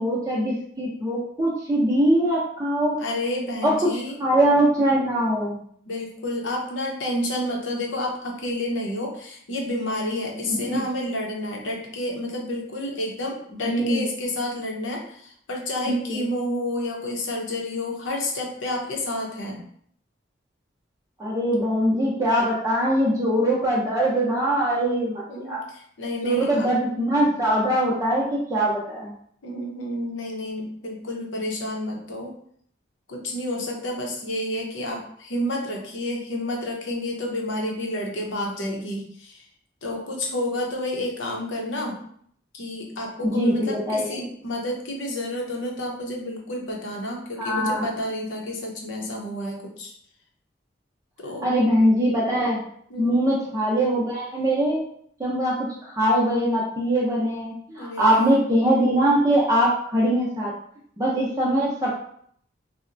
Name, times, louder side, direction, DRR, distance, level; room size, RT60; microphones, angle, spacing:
voice 1, 0.0-3.0 3.6-3.9 4.2-5.6 10.5-10.8 13.6-14.1 15.9-16.2 21.2-25.6 26.2-29.1 43.2-44.3 47.4-47.9 51.4-52.6 53.0-54.8 55.2-60.5 61.0-61.9, right 1 dB, 20° right, -5 dB, 0.5 m, -22 dB
voice 2, 3.0-4.2 5.9-19.6 25.3-26.7 29.4-32.3 33.1-39.4 39.8-42.0 42.5-49.9 51.2-51.5 52.9-53.2 57.8-58.4, left 1 dB, 90° left, 0 dB, 0.7 m, -30 dB
4.1 x 2.1 x 2.5 m, 0.65 s
head